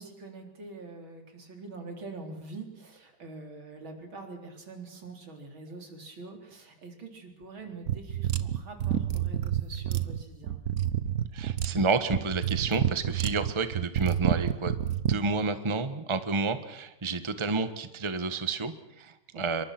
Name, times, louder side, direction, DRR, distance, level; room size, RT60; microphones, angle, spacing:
voice 1, 0.0-10.6 19.3-19.7, right 3 dB, 85° right, 3 dB, 4.6 m, -44 dB
sound 1, 7.9-15.2, right 10 dB, 55° right, 1.4 m, -29 dB
voice 2, 11.3-19.6, right 4 dB, 15° right, 10 dB, 1.2 m, -30 dB
27.0 x 23.5 x 6.1 m, 0.88 s
omnidirectional pair, 2.1 m